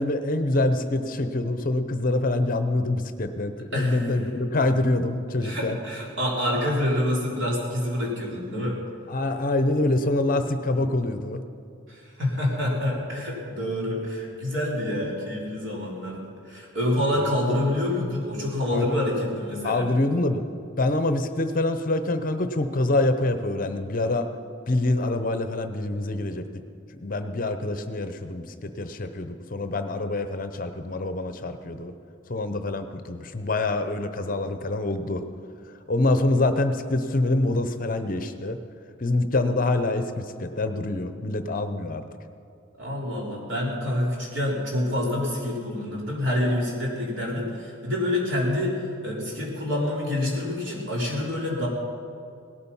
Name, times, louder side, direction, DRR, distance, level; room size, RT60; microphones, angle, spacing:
voice 1, 0.0-5.8 9.1-11.4 17.2-17.6 18.7-19.1 19.6-20.4 20.8-24.3 24.7-26.6 27.0-31.9 32.3-35.2 35.9-38.6 39.0-42.0, left 2 dB, 40° left, 9 dB, 0.8 m, -25 dB
voice 2, 3.7-4.1 5.4-8.8 11.9-19.9 42.8-51.7, left 1 dB, 65° right, -3 dB, 3.8 m, -27 dB
18.0 x 12.5 x 5.6 m, 2.4 s
head